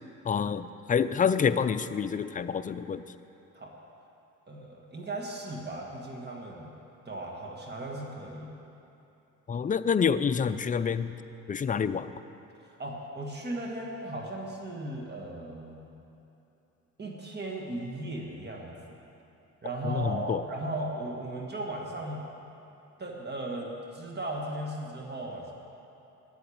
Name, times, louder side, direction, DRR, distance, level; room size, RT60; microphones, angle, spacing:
voice 1, 0.2-3.0 9.5-11.2 11.5-12.1 19.8-20.4, left 6 dB, 25° left, 12 dB, 0.4 m, -27 dB
voice 2, 4.5-6.7 7.0-8.5 12.8-15.9 17.0-19.0 19.6-22.2 23.0-25.5, right 1 dB, 35° right, 0 dB, 1.7 m, -37 dB
8.8 x 8.2 x 8.5 m, 2.9 s
cardioid pair, 90°, 30 cm